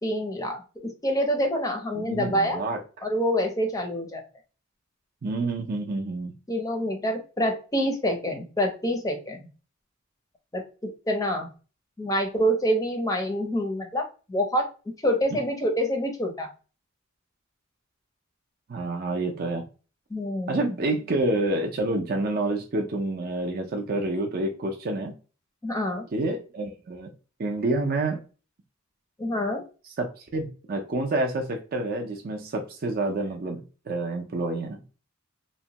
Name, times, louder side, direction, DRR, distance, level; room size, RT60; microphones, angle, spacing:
voice 1, 0.0-2.6 3.0-4.2 6.5-9.5 10.5-10.6 11.1-11.5 12.0-14.7 15.0-16.5 20.1-20.6 25.6-26.1 29.2-29.6, equal, 15° left, 4 dB, 0.5 m, -26 dB
voice 2, 1.9-2.8 5.2-6.4 18.7-19.6 20.5-25.1 26.1-27.1 27.4-28.2 30.0-34.8, right 2 dB, 45° right, 3 dB, 0.5 m, -28 dB
2.9 x 2.1 x 2.7 m, 0.35 s
head